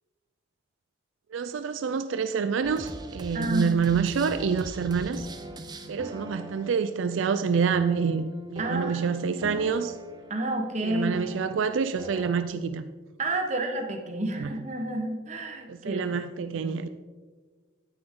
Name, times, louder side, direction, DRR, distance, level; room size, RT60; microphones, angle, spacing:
voice 1, 1.3-5.3 5.9-10.0 10.8-12.8 14.4-14.5 15.7-16.9, right 6 dB, 80° right, 11 dB, 0.4 m, -27 dB
sound 1, 2.6-12.4, right 1 dB, 20° right, 0.7 m, -42 dB
voice 2, 3.3-3.7 8.6-9.6 10.3-11.2 13.2-16.1 16.5-16.7, right 1 dB, 35° right, 3 dB, 1.2 m, -30 dB
9.7 x 8.7 x 3.8 m, 1.4 s
head